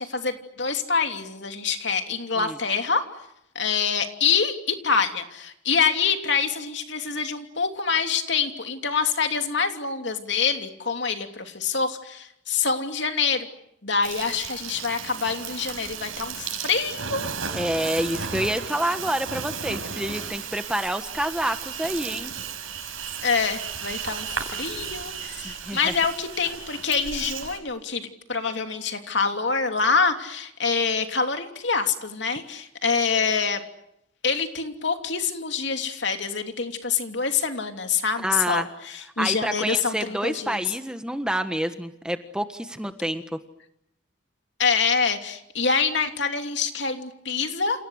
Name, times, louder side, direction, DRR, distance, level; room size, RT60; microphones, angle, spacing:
voice 1, 0.0-3.0 3.5-13.5 13.8-17.3 23.2-33.6 34.2-40.6 44.6-47.8, left 5 dB, 60° left, 5 dB, 3.0 m, -26 dB
Insect, 14.0-27.6, right 6 dB, 90° right, 5.4 m, -34 dB
voice 2, 17.5-22.3 25.4-25.9 38.2-38.7 39.2-43.2, right 1 dB, 5° right, 7 dB, 1.4 m, -28 dB
29.5 x 29.0 x 6.5 m, 0.79 s
head